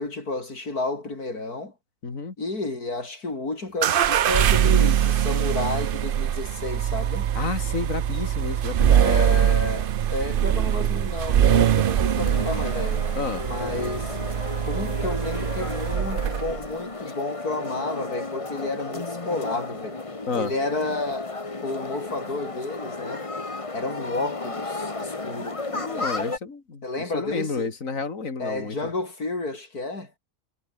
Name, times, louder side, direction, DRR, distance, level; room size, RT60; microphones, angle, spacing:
voice 1, 0.0-1.7 2.4-7.3 8.9-13.0 13.4-14.2 14.6-20.0 20.3-21.3 21.6-23.3 23.7-25.6 26.8-27.7 28.4-30.1, left 2 dB, 85° left, 5.6 m, -31 dB
voice 2, 2.0-2.3 7.3-8.9 13.2-13.4 20.3-20.5 25.7-26.8 27.1-28.7, left 4 dB, 60° left, 3.3 m, -30 dB
sound 1, 3.8-16.7, right 10 dB, 60° right, 0.6 m, -23 dB
sound 2, 11.8-26.4, left 3 dB, 20° left, 1.6 m, -33 dB
omnidirectional pair, 1.6 m